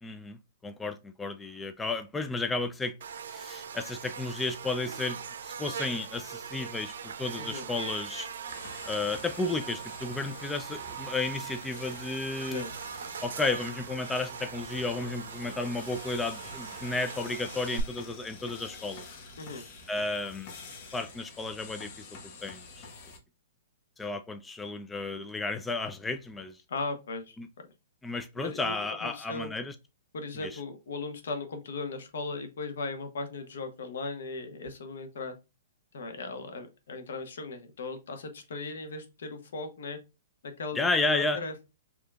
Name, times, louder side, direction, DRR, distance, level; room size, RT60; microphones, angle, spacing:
voice 1, 0.0-3.0 3.3-8.3 8.9-12.7 13.2-19.1 19.9-20.5 20.9-22.1 22.4-22.9 24.0-26.6 27.4-27.5 28.0-29.7 30.4-30.6 40.7-41.4, left 3 dB, 10° left, 0.4 m, -33 dB
Buzz, 3.0-17.8, right 7 dB, 75° right, 0.6 m, -41 dB
voice 2, 7.3-7.7 12.5-12.7 19.4-19.6 26.7-27.4 28.4-28.8 29.0-29.5 30.1-35.3 35.9-40.0 40.4-41.5, left 3 dB, 75° left, 1.1 m, -37 dB
sound 1, 8.5-23.2, left 3 dB, 45° left, 1.0 m, -47 dB
4.7 x 2.8 x 2.3 m
hypercardioid pair, 140°, 0 cm